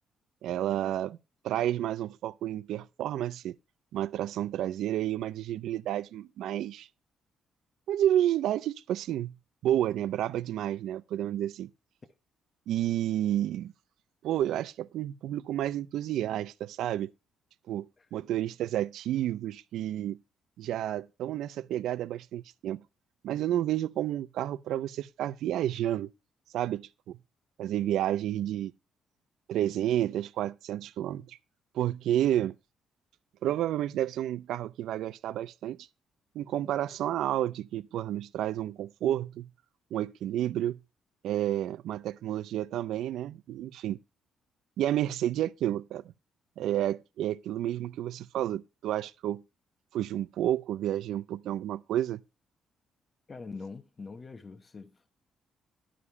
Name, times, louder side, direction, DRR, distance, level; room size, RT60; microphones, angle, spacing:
voice 1, 0.4-1.2 1.4-3.6 3.9-6.9 7.9-9.3 9.6-11.7 12.7-13.7 14.2-17.1 17.7-20.2 20.6-22.8 23.2-26.1 26.5-27.2 27.6-28.7 29.5-31.4 31.7-32.6 33.4-35.9 36.3-39.5 39.9-40.8 41.2-44.0 44.8-46.0 46.6-49.4 49.9-52.2, right 12 dB, 80° right, 0.4 m, -30 dB
voice 2, 53.3-55.1, left 4 dB, 35° left, 0.9 m, -43 dB
11.5 x 5.0 x 5.5 m
cardioid pair, 90°, 0 cm